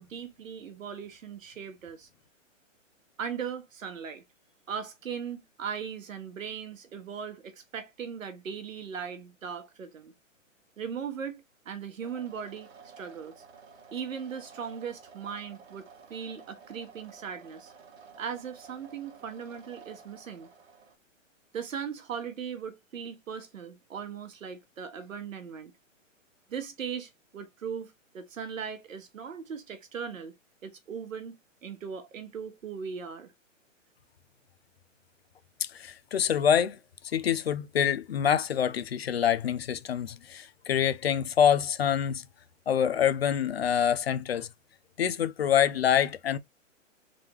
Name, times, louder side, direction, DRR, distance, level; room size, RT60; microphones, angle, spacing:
voice 1, 0.0-2.1 3.2-4.2 4.7-10.1 10.8-13.4 13.9-17.7 18.2-20.5 21.5-25.7 26.5-30.3 30.6-33.3, right 7 dB, 85° right, 1.4 m, -38 dB
sound 1, 12.0-20.9, right 5 dB, 55° right, 1.2 m, -52 dB
voice 2, 35.6-36.8 37.0-42.2 42.7-44.5 45.0-46.4, left 9 dB, 50° left, 0.5 m, -26 dB
3.7 x 3.4 x 2.9 m
hypercardioid pair, 175°, 39 cm